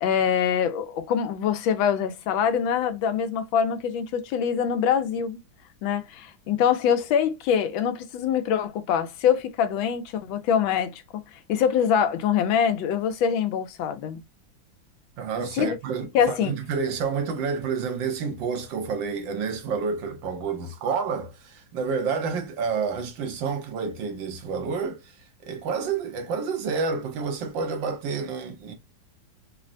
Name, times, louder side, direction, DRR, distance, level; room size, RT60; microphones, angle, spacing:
voice 1, 0.0-5.4 5.8-11.2 11.5-14.2 15.6-15.8 16.1-16.5, left 8 dB, 80° left, 1.4 m, -24 dB
voice 2, 15.2-25.0 25.4-28.8, right 5 dB, 75° right, 1.5 m, -29 dB
3.9 x 2.1 x 2.4 m
omnidirectional pair, 2.1 m